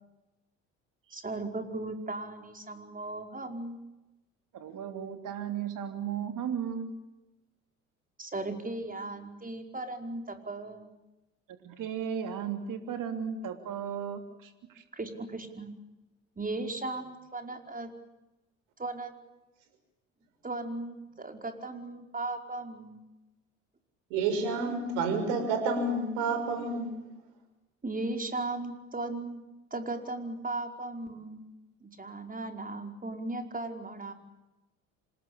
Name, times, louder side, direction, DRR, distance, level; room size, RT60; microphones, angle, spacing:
voice 1, 1.1-3.8 8.2-10.9 14.9-15.7 16.4-17.9 18.8-19.1 20.4-23.0 27.8-29.4 29.7-31.4 31.8-34.1, right 2 dB, 20° right, 5 dB, 5.2 m, -37 dB
voice 2, 4.5-6.9 11.6-14.8, right 8 dB, 55° right, 7 dB, 3.2 m, -35 dB
voice 3, 24.1-26.9, right 3 dB, 75° right, 8 dB, 6.0 m, -29 dB
27.0 x 20.0 x 8.7 m, 1.0 s
hypercardioid pair, 60°, 38 cm